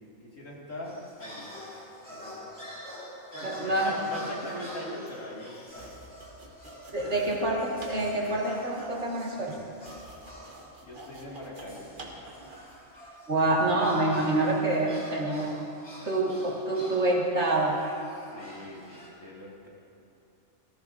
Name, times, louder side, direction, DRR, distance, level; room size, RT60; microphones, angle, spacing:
voice 1, 0.2-1.5 2.1-2.7 3.3-5.9 10.8-12.2 18.3-19.7, left 1 dB, 90° left, -5 dB, 2.6 m, -41 dB
sound 1, 0.8-10.7 11.7-19.1, equal, 5° left, 2.6 m, -47 dB
voice 2, 3.4-3.9 6.9-9.6 13.3-15.5 16.0-17.8, right 2 dB, 65° right, -3 dB, 2.0 m, -26 dB
sound 2, 5.7-12.7, right 1 dB, 45° right, 1.5 m, -47 dB
17.5 x 14.5 x 2.6 m, 2.7 s
omnidirectional pair, 1.3 m